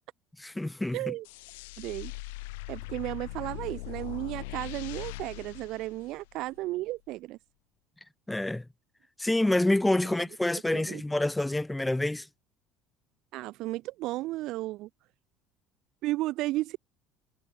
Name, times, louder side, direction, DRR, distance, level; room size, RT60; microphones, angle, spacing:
voice 1, 0.4-1.1 8.3-8.6 9.2-12.3, left 1 dB, 10° left, 3.1 m, -27 dB
voice 2, 0.9-1.3 1.8-2.1 2.7-7.4 10.7-11.0 13.3-14.9 16.0-16.8, right 17 dB, 65° right, 2.3 m, -34 dB
sound 1, 1.2-6.6, left 24 dB, 90° left, 2.4 m, -41 dB
supercardioid pair, 100°, 0 cm